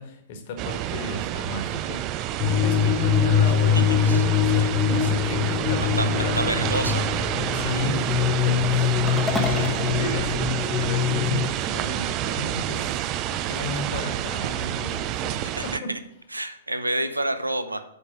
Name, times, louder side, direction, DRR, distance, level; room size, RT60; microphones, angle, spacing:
voice 1, 0.0-6.7 7.5-16.0, left 1 dB, 45° left, 5 dB, 1.4 m, -35 dB
sound 1, 0.6-15.8, right 12 dB, 30° right, 0.4 m, -28 dB
sound 2, 2.4-11.5, left 9 dB, 30° left, 0.5 m, -23 dB
voice 2, 6.3-7.1 9.5-9.7 15.5-16.0 16.3-17.8, right 1 dB, 85° right, 10 dB, 0.7 m, -29 dB
sound 3, 9.1-11.4, equal, ahead, 1.0 m, -32 dB
8.1 x 5.2 x 5.4 m, 0.77 s
figure-of-eight pair, 110°, 0 cm